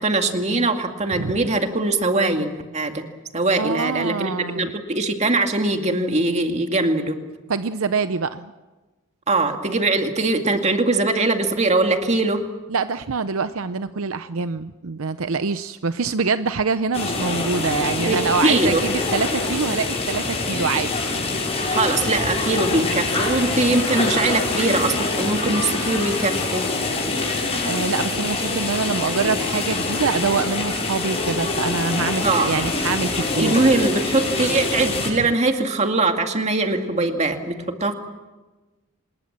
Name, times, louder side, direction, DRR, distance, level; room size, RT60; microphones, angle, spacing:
voice 1, 0.0-3.0 3.3-7.2 9.3-12.4 18.1-18.8 21.7-26.7 32.2-32.5 33.3-37.9, right 2 dB, 30° right, 5 dB, 2.2 m, -21 dB
voice 2, 3.6-4.7 7.5-8.5 12.7-20.9 27.6-33.5, right 4 dB, 70° right, 11 dB, 0.7 m, -25 dB
sound 1, 16.9-35.1, left 3 dB, 30° left, 6.7 m, -25 dB
26.5 x 21.0 x 7.5 m, 1.2 s
head